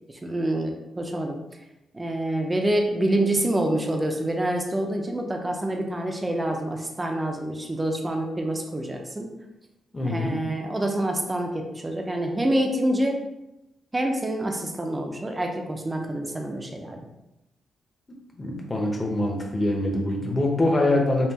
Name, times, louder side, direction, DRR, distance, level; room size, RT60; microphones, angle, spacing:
voice 1, 0.2-1.4 1.9-9.3 10.0-13.2 13.9-17.0, right 1 dB, 15° right, 2 dB, 0.5 m, -26 dB
voice 2, 9.9-10.4 18.3-21.3, left 1 dB, 20° left, 0 dB, 0.7 m, -24 dB
5.4 x 2.4 x 2.9 m, 0.91 s
wide cardioid pair, 150°, 0 cm